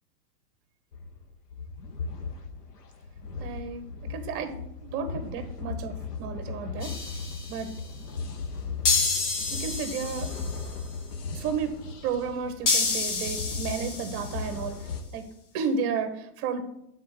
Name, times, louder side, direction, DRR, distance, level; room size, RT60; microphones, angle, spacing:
sound 1, 0.9-15.0, left 4 dB, 90° left, 1.2 m, -37 dB
voice 1, 3.4-3.8 4.1-4.6 4.8-6.9 7.5-7.7 9.6-10.3 11.3-11.7 12.0-15.2 15.5-16.6, right 6 dB, 30° right, 9 dB, 1.0 m, -32 dB
sound 2, 6.8-7.7 8.8-10.7 12.7-14.6, left 4 dB, 50° left, 1.9 m, -29 dB
7.5 x 4.3 x 5.8 m, 0.80 s
hypercardioid pair, 135°, 46 cm